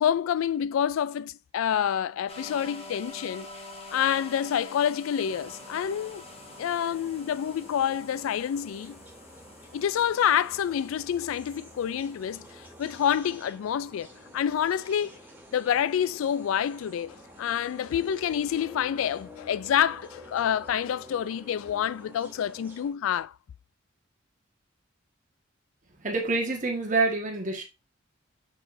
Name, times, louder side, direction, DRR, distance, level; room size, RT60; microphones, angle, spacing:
voice 1, 0.0-3.5 3.9-6.2 6.6-9.0 9.7-12.4 12.8-14.1 14.3-15.1 15.5-23.3, left 9 dB, 85° left, 0.3 m, -27 dB
sound 1, 2.3-13.0, left 2 dB, 30° left, 1.2 m, -47 dB
sound 2, 5.2-22.9, equal, 10° right, 2.6 m, -49 dB
voice 2, 26.0-27.6, right 3 dB, 40° right, 1.6 m, -27 dB
6.6 x 6.0 x 2.6 m
head